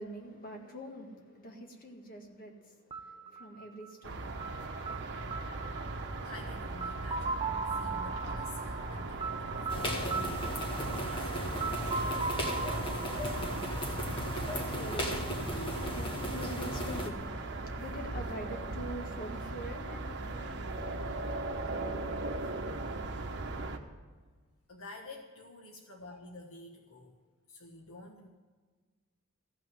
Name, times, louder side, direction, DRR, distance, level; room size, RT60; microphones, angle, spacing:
voice 1, 0.0-5.0 13.6-23.2, equal, 40° left, 1.8 m, -46 dB
sound 1, 2.9-14.7, right 4 dB, 25° right, 0.6 m, -39 dB
sound 2, 4.0-23.8, right 2 dB, 55° right, 1.1 m, -39 dB
voice 2, 6.2-10.5 11.0-12.6 24.7-27.1 27.5-28.3, left 2 dB, 75° left, 1.5 m, -49 dB
sound 3, 9.7-17.1, equal, 25° left, 1.6 m, -36 dB
15.0 x 6.1 x 9.2 m
head